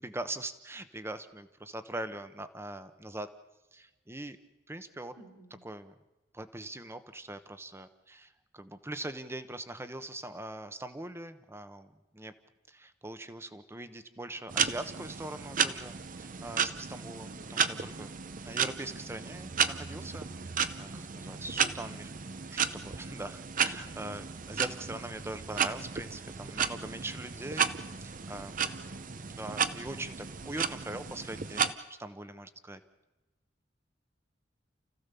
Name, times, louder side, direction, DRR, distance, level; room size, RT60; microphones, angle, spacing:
voice 1, 0.0-3.3 3.7-4.4 4.7-5.1 5.6-5.9 6.3-12.3 12.7-27.7 28.0-28.6 29.3-31.7 32.0-32.8, right 1 dB, 15° right, 10 dB, 1.0 m, -42 dB
voice 2, 5.2-5.5 17.1-17.5 28.3-29.1, right 2 dB, 65° right, 3 dB, 4.7 m, -55 dB
sound 1, 14.5-31.7, right 7 dB, 45° right, 0.7 m, -33 dB
29.5 x 15.0 x 6.9 m, 1.1 s
head